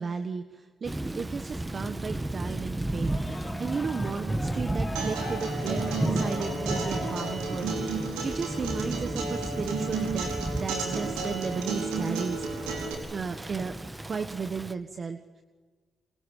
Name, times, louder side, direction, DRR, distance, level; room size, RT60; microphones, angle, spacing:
voice 1, 0.0-8.0 8.2-12.8 13.1-13.7 14.1-15.4, right 5 dB, 50° right, 8 dB, 1.4 m, -35 dB
Thunder / Rain, 0.8-14.7, right 2 dB, 20° right, 1.6 m, -34 dB
sound 1, 2.9-7.9, left 2 dB, 25° left, 3.7 m, -41 dB
Acoustic guitar, 5.0-12.9, right 3 dB, 85° right, 4.5 m, -33 dB
27.5 x 22.5 x 7.4 m, 1.4 s
hypercardioid pair, 45°, 0 cm